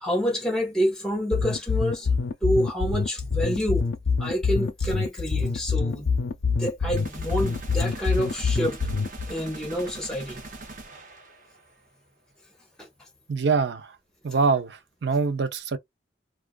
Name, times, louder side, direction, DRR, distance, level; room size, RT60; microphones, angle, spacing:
voice 1, 0.0-2.1 2.4-3.9 4.2-6.1 6.6-8.8 9.3-10.4 12.8-12.9, equal, 5° left, 0.6 m, -28 dB
sound 1, 1.3-9.3, left 4 dB, 90° left, 0.4 m, -25 dB
sound 2, 7.0-11.7, right 3 dB, 45° right, 0.9 m, -42 dB
voice 2, 13.3-13.9 14.2-15.8, right 4 dB, 75° right, 0.5 m, -24 dB
2.4 x 2.3 x 2.2 m
head